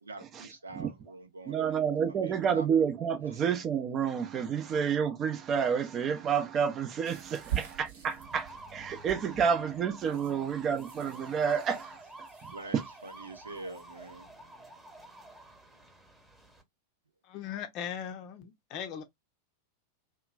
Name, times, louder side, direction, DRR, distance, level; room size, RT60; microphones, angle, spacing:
voice 1, 0.0-2.7 3.2-3.4 10.1-10.2 12.5-14.3, right 2 dB, 75° right, 0.6 m, -45 dB
voice 2, 1.5-12.0, right 7 dB, 30° right, 0.6 m, -29 dB
sound 1, 7.0-14.0, right 11 dB, 60° right, 1.0 m, -44 dB
sound 2, 8.1-16.6, right 2 dB, 10° right, 1.1 m, -50 dB
voice 3, 17.2-19.0, left 9 dB, 40° left, 0.6 m, -39 dB
2.9 x 2.3 x 2.3 m
figure-of-eight pair, 90°, 0 cm